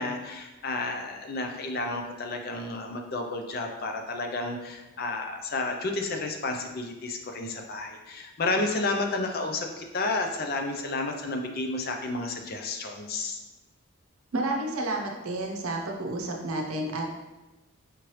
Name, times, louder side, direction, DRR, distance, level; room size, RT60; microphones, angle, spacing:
voice 1, 0.0-13.4, left 2 dB, 45° left, 3 dB, 0.4 m, -31 dB
voice 2, 14.3-17.1, right 2 dB, 75° right, 1 dB, 0.7 m, -30 dB
5.0 x 3.1 x 3.0 m, 1.1 s
head